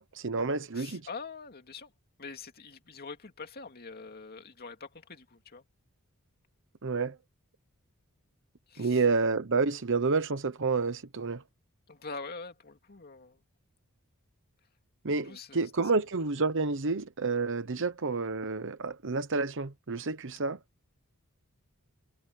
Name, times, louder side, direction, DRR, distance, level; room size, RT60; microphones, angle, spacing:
voice 1, 0.0-1.0 6.8-7.2 8.8-11.4 15.0-20.6, right 4 dB, 60° right, 1.0 m, -29 dB
voice 2, 0.7-1.9 2.2-5.6 8.7-9.0 11.9-13.4 15.2-15.9, left 4 dB, 45° left, 2.5 m, -44 dB
head